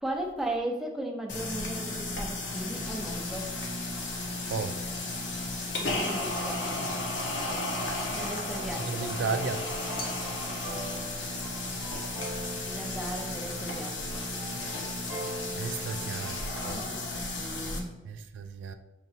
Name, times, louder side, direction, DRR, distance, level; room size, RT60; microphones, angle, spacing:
voice 1, 0.0-3.5 5.8-6.7 8.1-9.2 12.6-14.3 16.7-17.9, right 1 dB, ahead, 0.5 m, -37 dB
sound 1, 1.3-17.8, left 2 dB, 85° left, 0.8 m, -34 dB
sound 2, 5.8-16.7, right 1 dB, 35° right, 0.8 m, -44 dB
voice 2, 8.9-9.6 15.6-16.4 16.6-16.8 18.1-18.7, right 5 dB, 80° right, 0.3 m, -33 dB
5.7 x 2.9 x 2.7 m
head